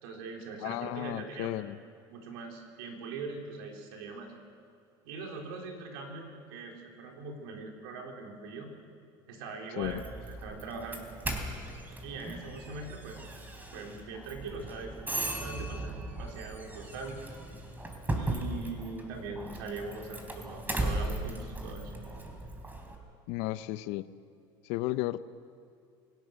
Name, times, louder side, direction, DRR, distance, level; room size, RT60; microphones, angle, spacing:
voice 1, 0.0-1.5 2.1-4.3 5.0-8.7 9.3-11.1 12.0-13.2 13.7-17.3 18.1-21.9, right 4 dB, 85° right, 1 dB, 3.9 m, -42 dB
voice 2, 0.6-1.8 9.8-10.0 23.3-24.1 24.6-25.2, left 17 dB, 70° left, 14 dB, 0.8 m, -33 dB
Doorbell, 9.8-23.0, right 2 dB, 15° right, 3.4 m, -37 dB
27.5 x 17.5 x 6.5 m, 2.5 s
supercardioid pair, 110°, 11 cm